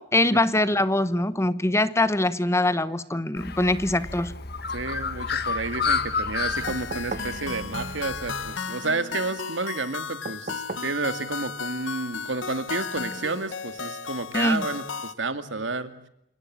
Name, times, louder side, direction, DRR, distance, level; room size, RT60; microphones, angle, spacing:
voice 1, 0.0-4.3 14.3-14.7, left 1 dB, 15° left, 15 dB, 1.0 m, -23 dB
Bird, 3.4-8.6, left 5 dB, 55° left, 1.6 m, -31 dB
voice 2, 4.7-15.9, right 3 dB, 75° right, 11 dB, 2.2 m, -31 dB
sound 1, 6.5-15.1, left 5 dB, 85° left, 1.3 m, -35 dB
sound 2, 6.7-7.4 10.2-11.0 12.6-12.7, right 3 dB, 45° right, 1.2 m, -36 dB
29.5 x 19.0 x 8.7 m, 0.80 s
head